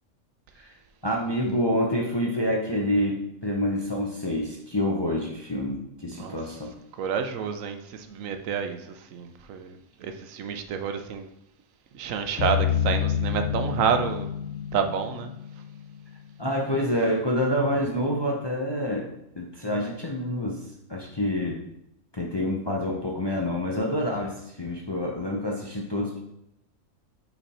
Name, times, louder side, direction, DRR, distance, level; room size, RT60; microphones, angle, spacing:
voice 1, 1.0-6.7 16.4-19.1 19.4-20.6 20.9-21.6 22.1-26.2, left 1 dB, 25° left, -1 dB, 0.6 m, -27 dB
voice 2, 6.1-6.6 6.9-11.3 11.9-15.3, right 7 dB, 80° right, 7 dB, 1.0 m, -29 dB
sound 1, 12.4-16.1, left 9 dB, 75° left, 1.0 m, -28 dB
5.7 x 4.2 x 4.2 m, 0.79 s
omnidirectional pair, 1.4 m